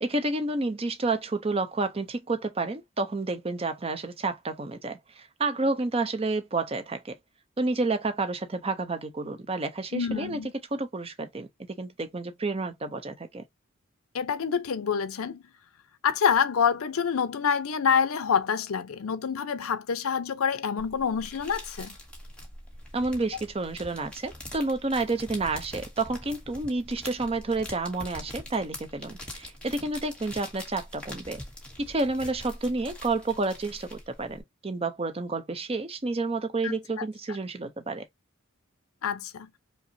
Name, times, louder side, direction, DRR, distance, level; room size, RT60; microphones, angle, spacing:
voice 1, 0.0-7.2 7.6-10.4 10.7-11.5 11.8-13.4 22.9-31.4 31.8-38.0, right 3 dB, 25° right, 0.6 m, -30 dB
voice 2, 9.9-10.5 14.1-15.4 16.0-22.0 36.6-37.0 39.0-39.5, left 7 dB, 80° left, 0.5 m, -27 dB
sound 1, 20.8-34.4, left 1 dB, 5° left, 0.9 m, -44 dB
5.1 x 2.0 x 2.7 m
head